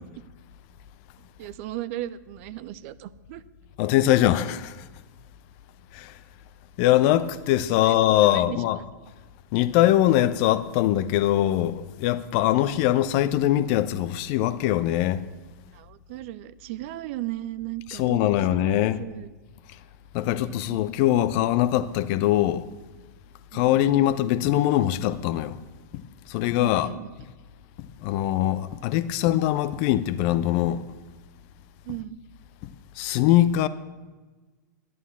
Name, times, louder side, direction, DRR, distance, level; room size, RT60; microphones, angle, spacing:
voice 1, 1.4-3.4 7.8-8.6 15.7-19.3 20.2-20.8 23.5-23.9 26.6-27.1 31.8-32.2, right 15 dB, 40° right, 0.6 m, -37 dB
voice 2, 3.8-4.8 5.9-6.1 6.8-8.8 9.5-15.2 18.0-19.0 20.1-22.6 23.5-25.6 25.9-26.0 26.3-26.9 27.8-30.8 32.6-33.7, left 13 dB, 40° left, 0.8 m, -22 dB
11.5 x 11.0 x 7.2 m
figure-of-eight pair, 100°, 10 cm